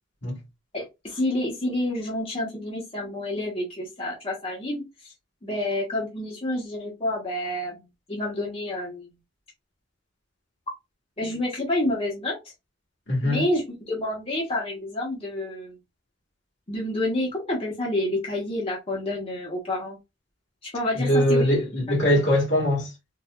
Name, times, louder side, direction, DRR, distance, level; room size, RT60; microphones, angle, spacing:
voice 1, 0.7-5.1 5.4-9.1 11.2-12.4 13.2-15.8 16.7-20.0 20.6-21.5 21.9-22.2, left 1 dB, 30° left, 1.1 m, -29 dB
voice 2, 13.1-13.4 20.9-22.9, left 1 dB, 55° left, 1.5 m, -22 dB
4.0 x 2.5 x 2.3 m
head